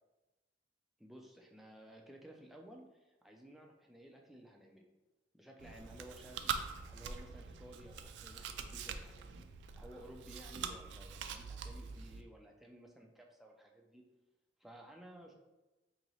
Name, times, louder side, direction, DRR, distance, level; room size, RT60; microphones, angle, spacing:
voice 1, 1.0-4.9 5.3-6.6 6.8-9.5 9.7-14.1 14.6-15.4, right 1 dB, ahead, 0 dB, 0.3 m, -55 dB
Chewing mastication, 5.6-12.2, right 6 dB, 90° right, 0.3 m, -44 dB
4.0 x 2.7 x 3.0 m, 1.1 s
head